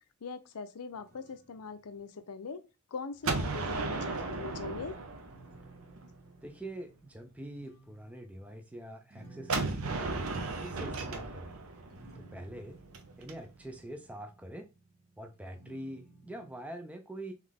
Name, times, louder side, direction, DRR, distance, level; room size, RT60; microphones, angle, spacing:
voice 1, 0.2-2.6 2.9-4.9, left 4 dB, 85° left, 0.6 m, -41 dB
sound 1, 0.9-2.0 3.9-16.6, right 2 dB, 45° right, 1.1 m, -57 dB
Gunshot gunfire, 3.2-6.1 9.5-13.3, right 3 dB, 65° right, 0.7 m, -35 dB
voice 2, 6.4-10.1 10.5-11.5 12.1-12.8 13.2-14.7 15.2-17.3, right 1 dB, 5° right, 0.4 m, -44 dB
3.8 x 3.1 x 3.4 m
head